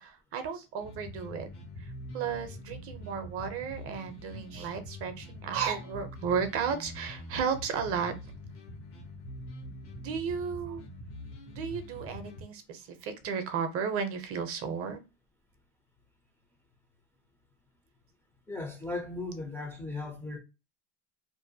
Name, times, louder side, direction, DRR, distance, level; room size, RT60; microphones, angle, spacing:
voice 1, 0.0-1.5 1.8-8.1 10.0-10.8 11.5-15.0, right 6 dB, 40° right, 0.6 m, -34 dB
sound 1, 0.8-12.4, left 1 dB, 90° left, 1.1 m, -44 dB
voice 2, 18.5-20.4, left 2 dB, 5° left, 0.4 m, -37 dB
2.5 x 2.1 x 2.6 m
supercardioid pair, 125°, 37 cm